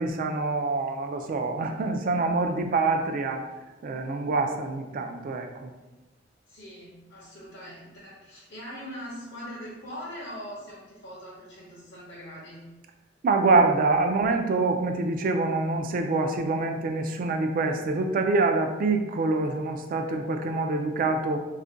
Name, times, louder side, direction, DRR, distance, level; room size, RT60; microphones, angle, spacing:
voice 1, 0.0-3.5 3.8-5.7 13.2-21.4, right 3 dB, 45° right, 5 dB, 0.3 m, -25 dB
voice 2, 6.5-12.7, equal, 60° left, -7 dB, 0.6 m, -41 dB
2.4 x 2.1 x 3.7 m, 1.1 s
head